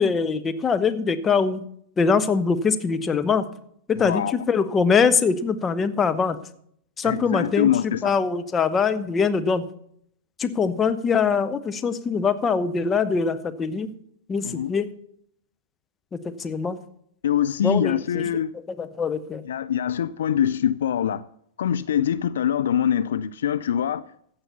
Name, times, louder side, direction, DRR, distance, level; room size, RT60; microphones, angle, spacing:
voice 1, 0.0-1.6 2.0-3.5 3.9-6.4 7.0-9.6 10.4-13.9 14.3-14.9 16.1-16.8 17.6-18.3 18.8-19.4, left 5 dB, 20° left, 10 dB, 0.9 m, -23 dB
voice 2, 4.0-4.4 7.0-8.1 14.4-14.7 17.2-18.5 19.4-21.2 21.6-24.0, left 9 dB, 70° left, 15 dB, 0.4 m, -24 dB
15.0 x 5.8 x 6.8 m, 0.69 s
figure-of-eight pair, 100°, 0 cm